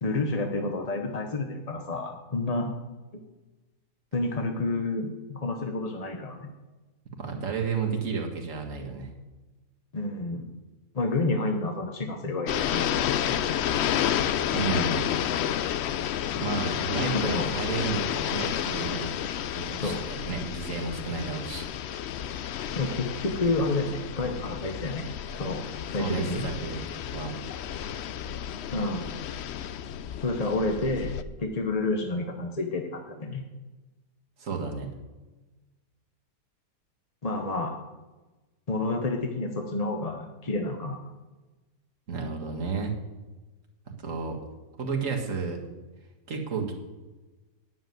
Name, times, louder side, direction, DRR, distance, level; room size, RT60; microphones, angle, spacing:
voice 1, 0.0-2.7 4.1-6.5 9.9-10.4 10.9-13.2 17.1-17.5 19.8-20.3 22.8-25.0 25.4-25.6 25.9-26.5 28.7-29.2 30.2-33.4 37.2-37.8 38.7-41.0, left 2 dB, 30° left, 3 dB, 0.8 m, -29 dB
voice 2, 7.2-9.1 14.5-15.0 16.3-19.1 19.5-21.7 26.0-26.8 27.1-27.4 34.4-34.9 42.1-42.9 44.0-44.4 44.8-45.6 46.3-46.7, right 5 dB, 55° right, 2 dB, 2.0 m, -32 dB
sound 1, 12.5-31.2, left 9 dB, 75° left, 0.6 m, -31 dB
9.0 x 7.7 x 9.3 m, 1.2 s
omnidirectional pair, 1.7 m